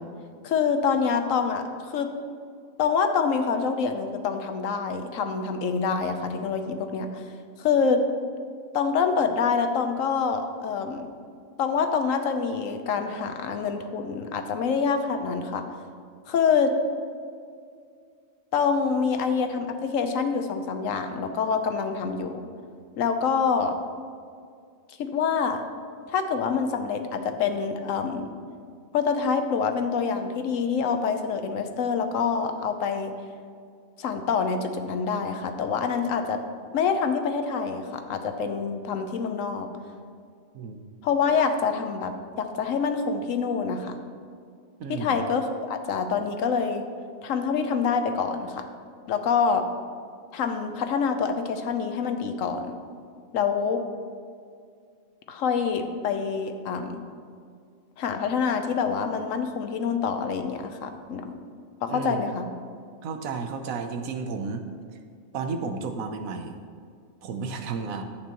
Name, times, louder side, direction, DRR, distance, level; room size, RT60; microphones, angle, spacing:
voice 1, 0.4-2.1 2.8-7.2 7.6-8.0 8.7-11.1 11.6-15.6 16.3-16.7 18.5-22.4 23.0-23.8 25.0-25.6 26.1-28.3 28.9-33.1 34.0-36.4 36.7-39.7 41.0-43.9 44.9-46.9 47.2-48.6 49.1-49.6 50.3-52.7 53.3-53.8 55.3-57.0 58.0-61.3 61.8-62.5, left 5 dB, 75° left, 7 dB, 1.1 m, -26 dB
voice 2, 44.8-45.2 61.9-62.2 63.0-64.7 65.3-66.6 67.2-68.0, right 4 dB, 90° right, 6 dB, 1.2 m, -32 dB
11.0 x 8.4 x 3.0 m, 2.2 s
omnidirectional pair, 1.4 m